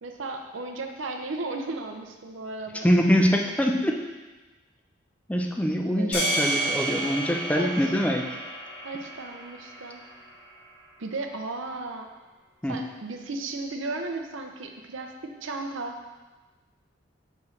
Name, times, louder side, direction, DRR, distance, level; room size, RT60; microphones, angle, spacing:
voice 1, 0.0-2.9 5.9-6.3 7.5-7.9 8.8-10.0 11.0-12.1 12.7-16.0, right 3 dB, 75° right, 4 dB, 0.6 m, -35 dB
voice 2, 2.8-4.0 5.3-8.3 12.6-12.8, equal, 5° left, 1 dB, 0.4 m, -24 dB
sound 1, 6.1-10.5, right 1 dB, 55° left, 2.0 m, -31 dB
7.1 x 4.7 x 3.2 m, 1.2 s
head